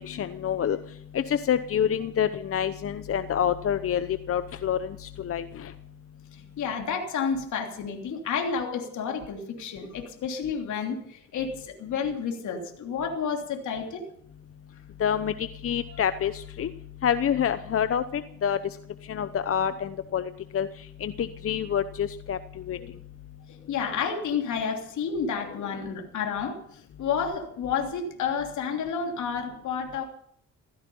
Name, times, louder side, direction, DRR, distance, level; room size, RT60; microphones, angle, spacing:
voice 1, 0.1-0.8 1.1-5.7 15.0-16.7 17.0-18.6 19.1-20.7 21.0-22.4 22.7-22.8, left 8 dB, 50° left, 12 dB, 0.9 m, -27 dB
voice 2, 6.3-14.0 22.8-23.0 23.5-26.6 27.0-30.0, left 6 dB, 75° left, 2 dB, 3.1 m, -30 dB
16.0 x 15.0 x 5.5 m, 0.65 s
cardioid pair, 90°, 30 cm